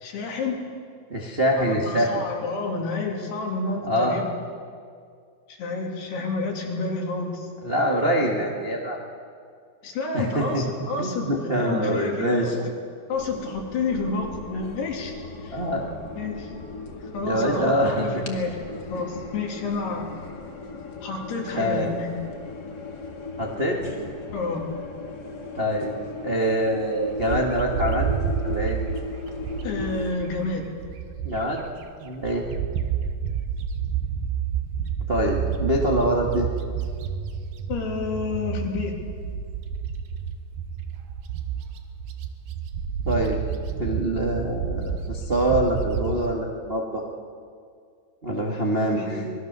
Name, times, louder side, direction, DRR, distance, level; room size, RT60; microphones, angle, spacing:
voice 1, 0.0-0.6 1.6-4.2 5.5-7.5 9.8-12.7 13.1-15.1 15.4-15.6 16.2-16.5 17.0-18.6 18.9-20.1 21.0-22.1 24.3-24.6 29.6-30.7 37.7-39.0 49.0-49.3, left 3 dB, 70° left, 0 dB, 4.8 m, -29 dB
voice 2, 1.1-2.2 3.8-4.2 7.6-9.0 10.1-10.6 11.0-12.5 15.5-15.8 17.2-18.1 18.9-19.1 21.5-21.9 23.4-23.8 25.5-25.9 26.2-28.1 28.4-28.8 31.2-31.6 32.0-32.5 35.1-36.5 43.0-43.4 43.8-47.0 48.2-49.2, right 1 dB, 45° right, -1 dB, 0.7 m, -24 dB
sound 1, 13.1-30.1, left 3 dB, 40° left, 1.4 m, -37 dB
Bird, 27.2-31.7 32.1-46.3, right 7 dB, 70° right, 2.4 m, -30 dB
25.5 x 20.5 x 6.9 m, 2.2 s
omnidirectional pair, 4.9 m